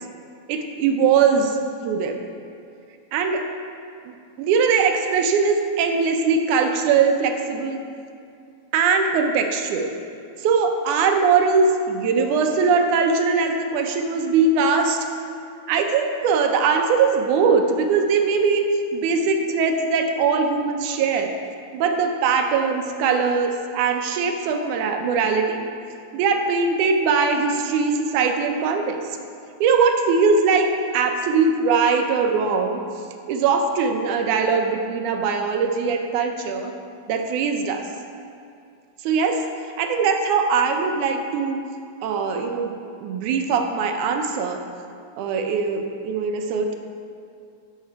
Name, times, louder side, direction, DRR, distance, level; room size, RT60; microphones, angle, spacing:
voice 1, 0.5-1.6 1.8-2.2 3.1-3.5 4.1-7.8 8.7-9.9 10.4-15.0 15.7-18.6 18.9-21.3 21.7-25.7 26.1-29.0 29.6-32.8 33.3-36.7 37.1-37.8 39.0-39.4 39.8-41.7 42.0-42.7 43.0-44.6 45.2-46.7, right 5 dB, 80° right, 4 dB, 2.1 m, -21 dB
12.5 x 5.5 x 4.7 m, 2.4 s
omnidirectional pair, 3.5 m